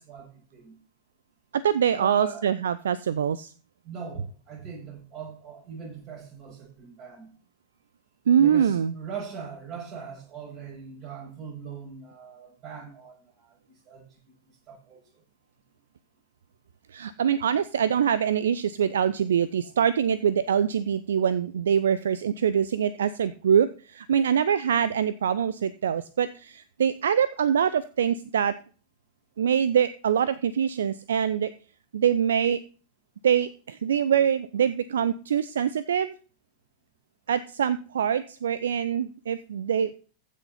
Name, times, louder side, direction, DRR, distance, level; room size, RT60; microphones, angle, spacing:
voice 1, 0.1-0.7 1.9-2.5 3.8-7.3 8.4-14.3 14.7-15.0, right 6 dB, 35° right, 6.2 m, -40 dB
voice 2, 1.5-3.5 8.3-8.9 16.9-28.6 29.4-31.5 31.9-32.6 33.2-36.1 37.3-39.9, right 8 dB, 65° right, 0.5 m, -24 dB
15.5 x 6.5 x 4.2 m
figure-of-eight pair, 90°, 0 cm